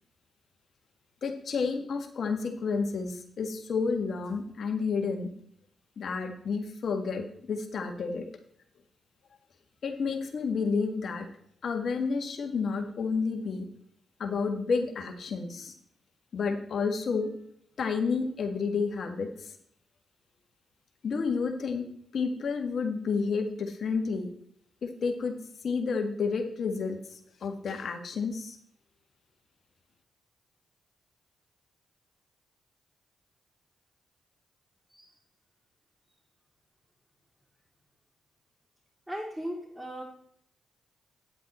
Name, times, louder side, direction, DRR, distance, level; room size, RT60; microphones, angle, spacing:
voice 1, 1.2-5.3 6.0-8.2 9.8-11.3 11.6-13.7 14.2-15.7 16.3-17.3 17.8-19.5 21.0-21.9 22.1-24.3 24.8-25.4 25.6-28.6, left 5 dB, 65° left, 5 dB, 1.6 m, -30 dB
voice 2, 39.1-40.0, equal, 10° right, -4 dB, 3.5 m, -37 dB
9.7 x 8.2 x 4.3 m, 0.67 s
supercardioid pair, 45°, 0 cm